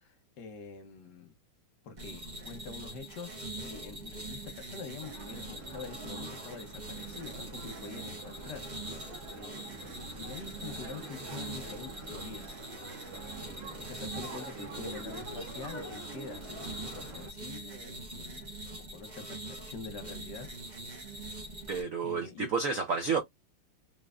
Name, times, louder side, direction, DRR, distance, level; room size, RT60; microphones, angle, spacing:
voice 1, 0.0-1.3 1.8-8.7 9.4-12.7 13.4-20.5 21.4-21.6 22.0-22.5, left 5 dB, 60° left, 1.3 m, -46 dB
sound 1, 2.0-21.8, right 2 dB, 35° right, 0.8 m, -43 dB
sound 2, 5.0-17.3, right 2 dB, 50° right, 1.8 m, -46 dB
voice 2, 21.7-23.2, right 5 dB, 75° right, 0.7 m, -30 dB
3.7 x 3.3 x 2.4 m
omnidirectional pair, 2.3 m